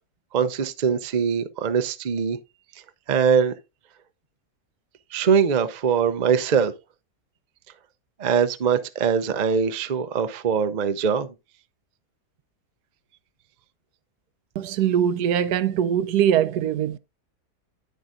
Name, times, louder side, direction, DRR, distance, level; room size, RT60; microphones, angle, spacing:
voice 1, 0.3-2.4 3.1-3.5 5.1-6.7 8.2-11.3, right 6 dB, 55° right, 0.4 m, -22 dB
voice 2, 14.6-17.0, right 9 dB, 75° right, 1.1 m, -22 dB
9.4 x 7.8 x 2.5 m
omnidirectional pair, 1.7 m